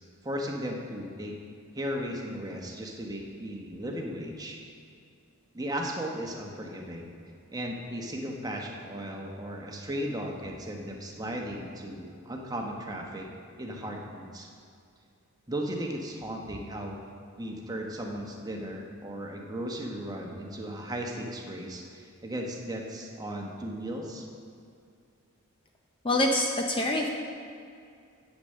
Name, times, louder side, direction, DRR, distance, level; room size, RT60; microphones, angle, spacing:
voice 1, 0.2-1.3 1.7-4.6 5.5-7.1 7.5-13.3 13.6-14.5 15.5-17.0 17.4-24.2, equal, 15° right, 0 dB, 1.0 m, -36 dB
voice 2, 26.0-27.1, left 1 dB, 25° left, 2 dB, 0.6 m, -25 dB
8.3 x 6.7 x 6.6 m, 2.4 s
head